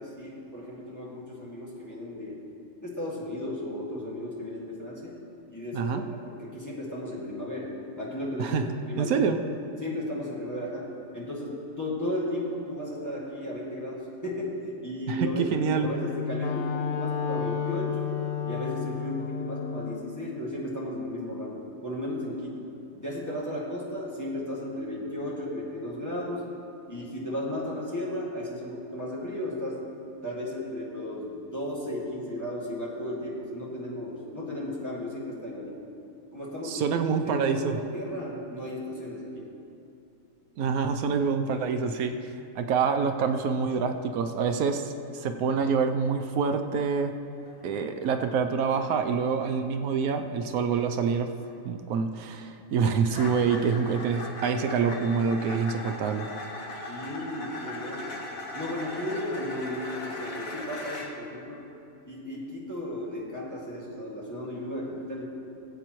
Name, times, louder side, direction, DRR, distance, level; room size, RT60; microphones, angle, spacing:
voice 1, 0.0-2.4 2.8-5.2 5.5-7.7 8.0-8.6 8.9-9.4 9.8-18.1 18.4-22.6 22.9-26.4 26.9-29.8 30.2-35.7 36.3-36.9 37.3-39.5 56.9-58.2 58.5-61.6 62.1-65.2, left 1 dB, 10° left, -6 dB, 1.8 m, -34 dB
voice 2, 9.0-9.4 15.1-15.9 36.6-37.8 40.6-47.1 47.6-51.3 51.6-56.3 56.8-57.0, right 6 dB, 80° right, 6 dB, 1.1 m, -26 dB
Wind instrument woodwind instrument, 15.9-20.1, left 8 dB, 85° left, 1.2 m, -32 dB
sound 1, 47.4-47.6 47.9-48.3 48.7-48.9 49.3-49.5 49.9-50.2 50.8-51.0 51.4-51.5 53.0-61.1, left 2 dB, 70° left, 1.6 m, -39 dB
19.0 x 8.3 x 3.0 m, 2.6 s
omnidirectional pair, 1.5 m